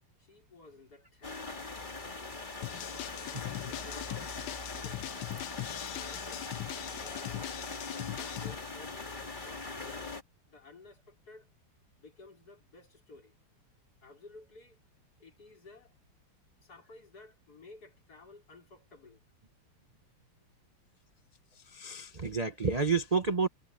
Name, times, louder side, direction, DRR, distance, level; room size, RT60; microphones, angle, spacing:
voice 1, 0.2-1.5 2.7-5.0 5.8-6.5 7.0-7.5 7.9-10.1 10.5-11.5 12.0-13.4 14.0-14.8 15.2-15.9 16.6-19.2, left 3 dB, 45° left, 4.7 m, -54 dB
sound 1, 1.2-10.2, left 3 dB, 20° left, 2.2 m, -41 dB
sound 2, 2.6-8.6, left 17 dB, 75° left, 1.4 m, -41 dB
voice 2, 21.5-23.5, right 4 dB, 40° right, 0.5 m, -30 dB
omnidirectional pair, 2.4 m